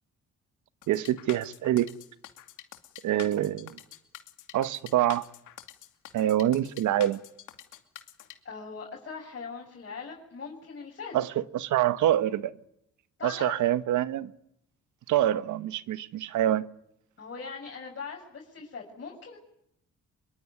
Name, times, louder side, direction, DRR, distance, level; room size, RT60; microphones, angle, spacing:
sound 1, 0.8-8.3, left 12 dB, 80° left, 2.6 m, -46 dB
voice 1, 0.9-1.9 3.0-3.8 4.5-5.2 6.1-7.2 11.1-12.5 13.2-14.3 15.1-16.6, right 12 dB, 80° right, 1.2 m, -26 dB
voice 2, 8.4-11.2 13.2-13.6 17.2-19.4, left 5 dB, 40° left, 7.4 m, -40 dB
25.5 x 23.0 x 9.6 m
cardioid pair, 90°, 30 cm